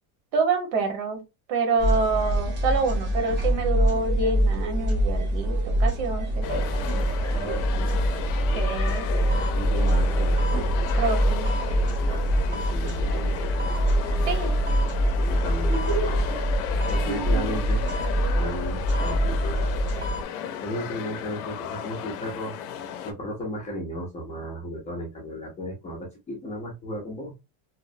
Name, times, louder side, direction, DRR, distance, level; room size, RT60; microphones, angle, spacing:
voice 1, 0.3-1.2 1.5-6.5 8.5-9.1 11.0-11.5 14.3-14.5 17.0-17.6, right 4 dB, 80° right, 5 dB, 1.1 m, -27 dB
sound 1, 1.8-20.2, right 1 dB, 25° right, 0.6 m, -24 dB
sound 2, 6.4-23.1, left 9 dB, 75° left, 0.6 m, -35 dB
voice 2, 7.2-8.0 9.5-10.4 12.1-12.2 12.5-13.5 15.2-16.4 16.9-17.8 18.4-19.7 20.6-22.5 23.0-27.3, equal, 15° left, -2 dB, 0.4 m, -34 dB
2.7 x 2.0 x 2.5 m, 0.25 s
cardioid pair, 170°, 44 cm